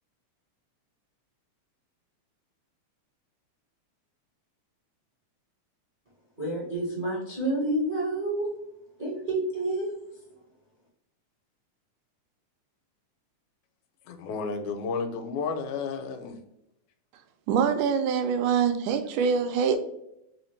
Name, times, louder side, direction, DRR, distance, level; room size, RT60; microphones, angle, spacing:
voice 1, 6.4-8.5 9.0-9.9, right 1 dB, 70° right, -6 dB, 0.4 m, -29 dB
voice 2, 14.1-16.4, left 5 dB, 85° left, 7 dB, 2.0 m, -32 dB
voice 3, 17.5-19.8, right 7 dB, 90° right, 7 dB, 2.0 m, -24 dB
4.9 x 2.8 x 3.2 m, 0.80 s
omnidirectional pair, 3.3 m